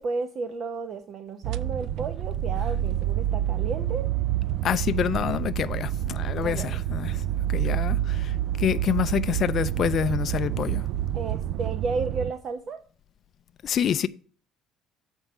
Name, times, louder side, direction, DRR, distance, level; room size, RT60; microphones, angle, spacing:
voice 1, 0.0-4.1 6.4-6.8 11.1-12.8, right 4 dB, 40° right, 0.8 m, -33 dB
sound 1, 1.4-12.3, right 12 dB, 60° right, 0.3 m, -28 dB
voice 2, 4.6-7.2 7.5-10.8 13.6-14.1, left 9 dB, 45° left, 0.4 m, -27 dB
8.0 x 4.5 x 7.0 m
cardioid pair, 140°, 0 cm